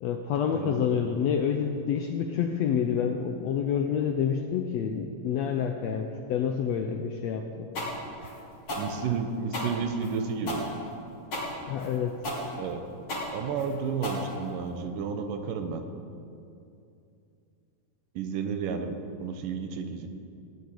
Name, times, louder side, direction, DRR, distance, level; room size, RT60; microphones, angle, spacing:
voice 1, 0.0-7.7 11.6-12.1, left 7 dB, 75° left, 4 dB, 1.6 m, -28 dB
voice 2, 0.5-0.9 8.8-10.6 12.6-12.8 13.3-15.8 18.2-20.1, right 5 dB, 80° right, 7 dB, 2.7 m, -32 dB
sound 1, 7.8-14.8, left 1 dB, 40° left, 3.6 m, -35 dB
15.5 x 7.9 x 9.7 m, 2.6 s
omnidirectional pair, 3.8 m